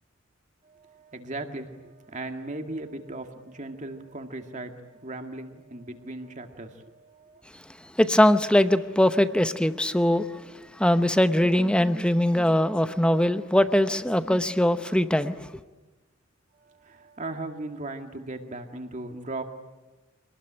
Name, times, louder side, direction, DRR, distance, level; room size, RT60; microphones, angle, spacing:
voice 1, 0.7-7.4 16.6-19.4, right 2 dB, 40° right, 2.1 m, -38 dB
voice 2, 8.0-10.4 10.8-15.4, left 1 dB, 5° left, 0.8 m, -21 dB
25.5 x 19.5 x 10.0 m
head